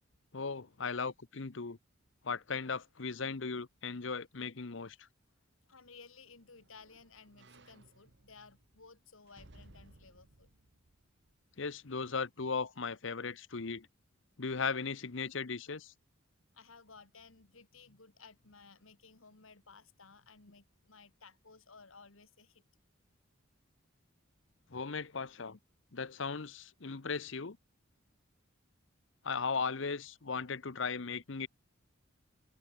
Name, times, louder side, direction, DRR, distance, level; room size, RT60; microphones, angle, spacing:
voice 1, 0.3-1.8 2.2-5.0 11.6-13.9 14.4-15.9 24.7-25.6 25.9-27.6 29.2-31.5, left 5 dB, 65° left, 0.9 m, -37 dB
voice 2, 5.6-10.5 16.5-22.6, left 4 dB, 90° left, 2.4 m, -57 dB
sound 1, 5.6-12.0 12.4-12.5, right 2 dB, 55° right, 1.7 m, -62 dB
head